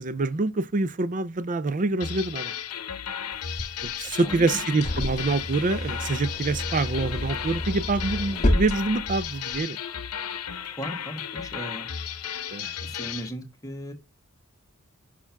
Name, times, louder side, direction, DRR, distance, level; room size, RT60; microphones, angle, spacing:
voice 1, 0.0-2.5 3.8-9.8 12.5-12.7, right 3 dB, 35° right, 0.5 m, -26 dB
sound 1, 2.0-13.3, left 8 dB, 85° left, 0.8 m, -34 dB
sound 2, 3.3-9.6, left 1 dB, 30° left, 1.9 m, -30 dB
voice 2, 4.0-4.6 10.8-11.9 12.8-13.9, equal, 15° left, 1.4 m, -37 dB
5.8 x 4.4 x 5.8 m
head